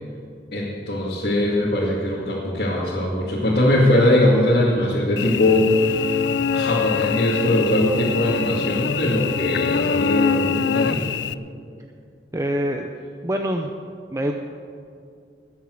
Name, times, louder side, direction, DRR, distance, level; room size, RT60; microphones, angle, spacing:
voice 1, 0.5-6.2 6.5-11.1, left 1 dB, 60° left, -7 dB, 2.3 m, -21 dB
Cricket / Buzz, 5.2-11.3, left 6 dB, 85° left, 0.4 m, -24 dB
voice 2, 12.3-12.9 13.2-13.7 14.1-14.3, equal, 15° right, 3 dB, 0.6 m, -25 dB
20.5 x 7.2 x 7.7 m, 2.3 s
head